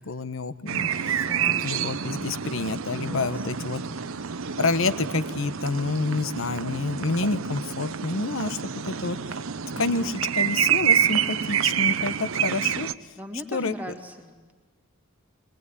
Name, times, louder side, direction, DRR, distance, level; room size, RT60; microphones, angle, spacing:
voice 1, 0.0-1.2 1.6-3.8 4.6-8.6 8.8-9.2 9.8-12.9 13.5-13.7, left 3 dB, 60° left, 14 dB, 1.0 m, -28 dB
sound 1, 0.7-12.9, right 8 dB, 65° right, 0.7 m, -28 dB
voice 2, 1.2-1.7 2.9-3.7 9.7-10.2 13.2-14.5, equal, 5° right, 3 dB, 2.1 m, -39 dB
22.5 x 21.0 x 9.8 m, 1.3 s
head